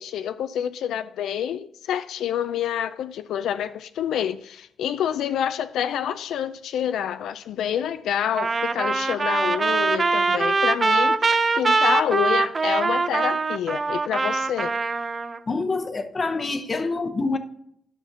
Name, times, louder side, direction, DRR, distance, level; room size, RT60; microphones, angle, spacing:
voice 1, 0.0-14.7, left 9 dB, 90° left, 0.3 m, -27 dB
Trumpet, 8.4-15.4, right 3 dB, 30° right, 0.4 m, -23 dB
voice 2, 15.5-17.4, left 3 dB, 30° left, 0.7 m, -26 dB
10.5 x 5.8 x 2.7 m
cardioid pair, 130°, 0 cm